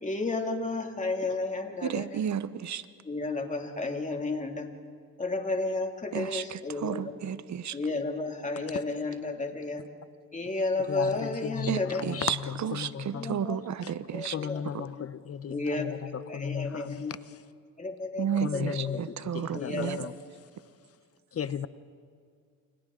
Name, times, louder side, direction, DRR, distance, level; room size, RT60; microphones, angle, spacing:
voice 1, 0.0-2.1 3.0-4.7 5.2-7.1 7.7-9.9 10.3-12.3 13.1-13.6 14.1-14.6 15.5-17.1 17.8-19.0 19.5-20.0, left 3 dB, 20° left, 2.5 m, -32 dB
voice 2, 1.8-2.9 6.1-7.8 11.7-14.4 18.2-20.0, right 8 dB, 50° right, 0.9 m, -32 dB
voice 3, 10.9-11.8 12.1-13.3 14.3-15.9 16.3-17.0 18.4-19.0 19.3-20.1 21.3-21.7, left 8 dB, 40° left, 0.8 m, -34 dB
30.0 x 28.0 x 3.8 m
cardioid pair, 95°, 38 cm